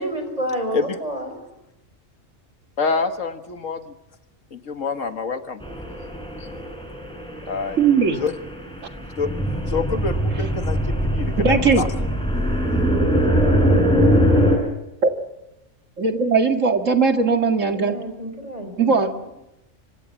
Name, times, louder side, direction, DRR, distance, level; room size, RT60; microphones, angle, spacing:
voice 1, 0.0-1.4 17.7-19.2, right 1 dB, 30° right, 6 dB, 5.3 m, -30 dB
voice 2, 2.8-3.9 4.5-5.6 7.5-7.8 8.1-8.3 9.2-9.3 9.7-11.9, left 4 dB, 90° left, 7 dB, 2.0 m, -26 dB
sound 1, 5.6-14.6, equal, 5° left, 6.3 m, -22 dB
voice 3, 7.8-8.2 11.4-11.8 16.0-18.0 18.8-19.1, right 5 dB, 80° right, 5 dB, 2.4 m, -18 dB
26.0 x 26.0 x 7.3 m, 0.92 s
omnidirectional pair, 1.3 m